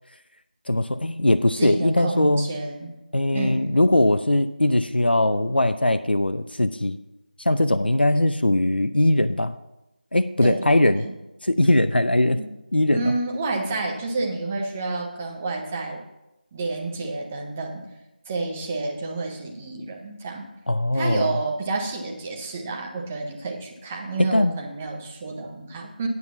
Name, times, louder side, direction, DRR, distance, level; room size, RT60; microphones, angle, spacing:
voice 1, 0.7-2.5 3.1-7.0 7.4-9.6 10.1-11.1 11.4-12.4 12.7-13.1 20.7-21.4 24.3-24.5, left 1 dB, 90° left, 10 dB, 0.6 m, -20 dB
voice 2, 1.6-3.0 3.3-3.8 10.4-11.1 12.4-12.5 12.9-16.0 16.5-17.9 18.3-20.5 20.9-26.1, right 3 dB, 10° right, 1 dB, 0.6 m, -29 dB
9.5 x 5.7 x 7.1 m, 0.93 s
figure-of-eight pair, 170°, 5 cm